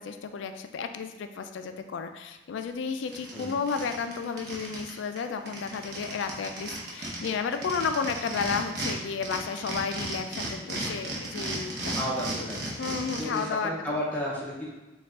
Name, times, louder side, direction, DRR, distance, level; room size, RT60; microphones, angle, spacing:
voice 1, 0.0-12.1 12.8-14.0, left 5 dB, 75° left, 8 dB, 0.3 m, -32 dB
sound 1, 2.6-2.7 3.0-4.9 5.2-5.3 5.5-8.9 9.2-13.5, right 2 dB, 55° right, 0.8 m, -34 dB
voice 2, 11.9-12.7 13.2-14.7, equal, 10° left, -5 dB, 0.5 m, -33 dB
4.5 x 2.4 x 3.6 m, 1.1 s
head